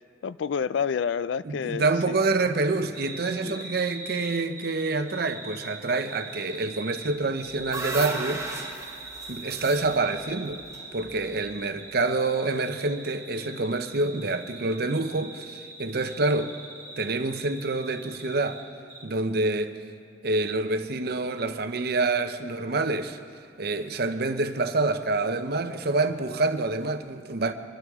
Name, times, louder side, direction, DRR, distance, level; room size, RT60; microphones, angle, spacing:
voice 1, 0.2-2.2 3.4-3.6, left 6 dB, 70° left, 0.3 m, -29 dB
voice 2, 1.4-8.5 9.3-10.6 10.9-16.5 17.0-18.6 19.0-19.8 20.2-23.2 23.6-27.5, right 3 dB, 55° right, 0.8 m, -27 dB
sound 1, 2.9-18.6 18.9-19.0, right 2 dB, 20° left, 3.4 m, -42 dB
sound 2, 7.2-11.5, right 2 dB, 15° right, 1.2 m, -36 dB
24.5 x 12.5 x 3.7 m
head